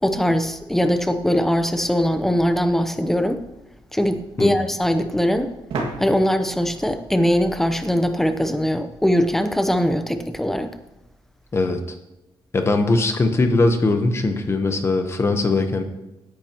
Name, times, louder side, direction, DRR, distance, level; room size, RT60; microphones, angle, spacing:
voice 1, 0.0-3.4 3.9-5.5 6.0-10.7, equal, 5° left, 8 dB, 0.7 m, -21 dB
sound 1, 5.7-8.3, right 3 dB, 80° right, 2.0 m, -34 dB
voice 2, 12.5-15.8, left 3 dB, 30° left, 6 dB, 1.0 m, -20 dB
16.5 x 9.7 x 3.0 m, 0.96 s
wide cardioid pair, 150°, 9 cm